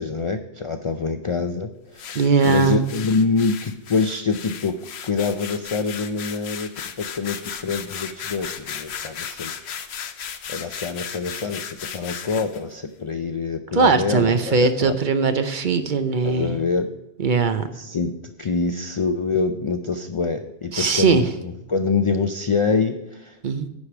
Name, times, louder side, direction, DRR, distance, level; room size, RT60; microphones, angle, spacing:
voice 1, 0.0-4.8 5.0-6.7 7.0-9.7 10.5-14.9 16.2-16.9 17.7-23.4, left 4 dB, 50° left, 8 dB, 0.3 m, -25 dB
sound 1, 2.0-12.6, left 8 dB, 70° left, 0.9 m, -35 dB
voice 2, 2.1-2.8 13.7-16.6 17.2-17.7 20.7-21.3 23.4-23.7, right 4 dB, 50° right, 9 dB, 0.7 m, -20 dB
10.5 x 5.0 x 5.9 m, 0.93 s
omnidirectional pair, 1.1 m